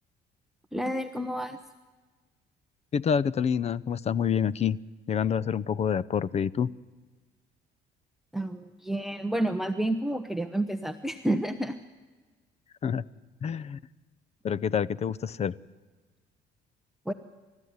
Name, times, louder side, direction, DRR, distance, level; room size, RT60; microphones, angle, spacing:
voice 1, 0.7-1.6 8.3-11.8 17.1-17.2, right 1 dB, ahead, 6 dB, 1.0 m, -30 dB
voice 2, 2.9-4.8 5.1-6.7 12.8-13.0 13.4-13.8 14.4-15.5, left 7 dB, 40° left, 21 dB, 0.7 m, -27 dB
30.0 x 14.0 x 9.6 m, 1.3 s
cardioid pair, 110°, 17 cm